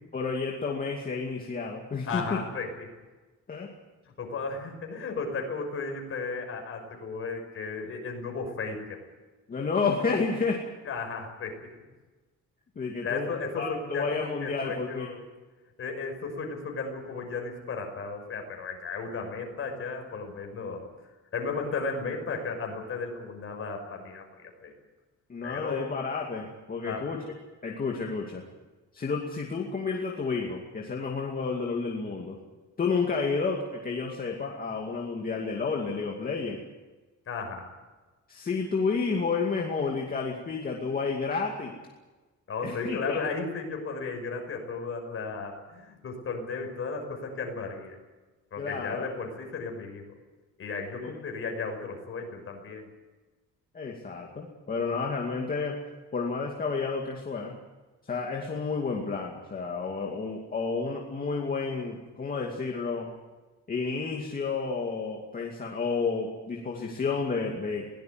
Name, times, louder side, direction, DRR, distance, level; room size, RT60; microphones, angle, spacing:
voice 1, 0.1-2.4 3.5-3.7 9.5-10.6 12.8-15.1 25.3-27.2 27.6-28.4 28.9-32.4 32.8-36.6 38.3-41.7 42.6-43.2 48.6-49.1 51.0-51.2 53.7-55.8 56.1-57.6 58.0-63.1 63.7-67.9, left 4 dB, 30° left, 0 dB, 2.4 m, -31 dB
voice 2, 2.0-2.7 4.2-9.0 10.8-11.7 13.0-15.2 15.8-20.9 21.3-24.7 25.4-26.0 26.8-27.1 37.3-37.7 42.5-48.0 48.5-50.0 50.6-52.8, left 4 dB, 45° left, 3 dB, 6.0 m, -34 dB
22.5 x 18.0 x 9.3 m, 1.2 s
cardioid pair, 175°, 31 cm